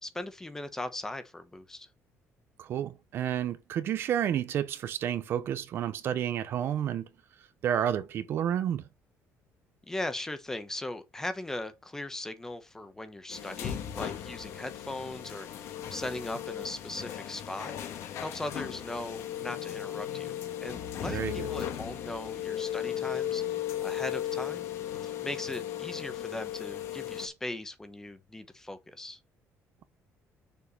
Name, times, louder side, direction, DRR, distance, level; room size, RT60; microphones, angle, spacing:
voice 1, 0.0-1.9 9.9-17.7 18.2-24.7 25.0-29.2, left 1 dB, 10° left, 1.0 m, -39 dB
voice 2, 2.6-7.1 7.6-8.9 21.0-21.5, right 10 dB, 45° right, 0.8 m, -30 dB
sound 1, 13.3-27.3, left 11 dB, 60° left, 1.6 m, -36 dB
7.0 x 4.4 x 5.7 m
cardioid pair, 175°, 5 cm